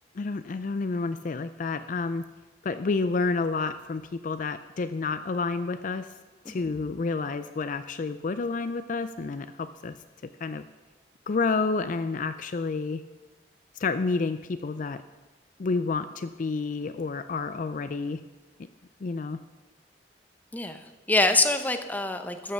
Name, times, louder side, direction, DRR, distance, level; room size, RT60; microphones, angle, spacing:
voice 1, 0.2-2.2 2.6-6.1 6.5-9.9 10.4-10.7 11.3-13.0 13.8-15.0 15.6-18.2 19.0-19.4, left 4 dB, 45° left, 11 dB, 0.4 m, -29 dB
voice 2, 21.1-22.5, left 2 dB, 10° left, 7 dB, 0.7 m, -25 dB
13.5 x 5.6 x 6.7 m, 1.2 s
head